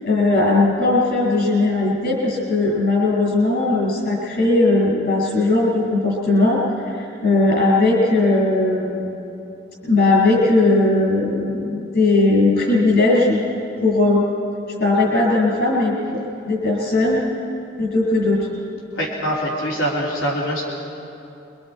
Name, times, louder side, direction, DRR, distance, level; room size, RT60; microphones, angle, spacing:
voice 1, 0.0-9.1 9.8-13.4 13.8-14.3 14.8-15.9 16.5-17.2 17.8-18.5, left 2 dB, 55° left, -4 dB, 6.8 m, -18 dB
voice 2, 18.9-20.6, equal, 85° left, -4 dB, 3.4 m, -23 dB
28.0 x 24.5 x 4.7 m, 2.8 s
head